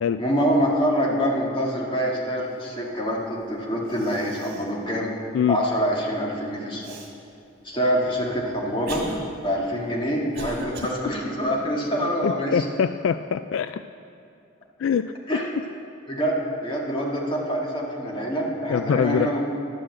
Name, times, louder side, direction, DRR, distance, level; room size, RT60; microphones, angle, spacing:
voice 1, 0.2-5.1 5.5-6.9 7.6-9.1 9.4-12.7 15.3-15.5 16.1-16.3 16.6-19.4, equal, 25° left, -3 dB, 2.0 m, -25 dB
Cough, 3.4-3.5 3.9-4.8 5.2-5.3 6.8-7.1 7.9-10.9, right 2 dB, 55° right, 1.9 m, -39 dB
voice 2, 12.2-13.8 14.8-15.6 18.7-19.3, left 7 dB, 75° left, 11 dB, 0.3 m, -24 dB
11.5 x 8.9 x 7.6 m, 2.6 s
head